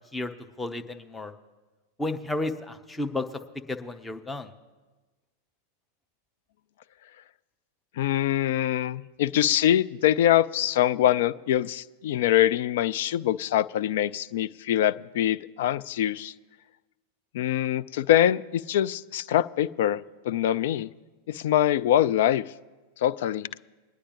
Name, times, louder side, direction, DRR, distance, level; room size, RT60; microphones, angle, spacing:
voice 1, 0.6-1.3 2.0-3.3 3.7-4.5, left 2 dB, 10° left, 6 dB, 0.8 m, -32 dB
voice 2, 8.0-16.3 17.3-20.9 21.3-22.5 23.0-23.5, left 12 dB, 55° left, 15 dB, 0.3 m, -24 dB
22.5 x 9.9 x 3.0 m, 1.2 s
figure-of-eight pair, 90°, 0 cm